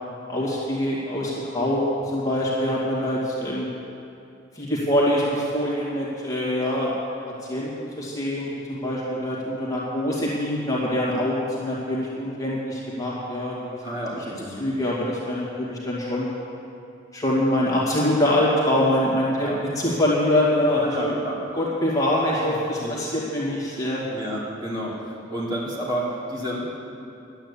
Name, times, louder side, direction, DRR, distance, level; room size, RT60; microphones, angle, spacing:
voice 1, 0.3-3.7 4.5-6.9 7.5-13.8 14.2-14.3 14.6-16.3 17.1-19.5 19.8-21.1 21.5-24.0, left 1 dB, 20° left, -6 dB, 2.1 m, -24 dB
voice 2, 13.8-14.7 19.4-19.5 20.7-21.4 22.8-22.9 24.1-26.6, equal, 25° right, -6 dB, 3.1 m, -30 dB
11.5 x 9.1 x 8.5 m, 2.7 s
head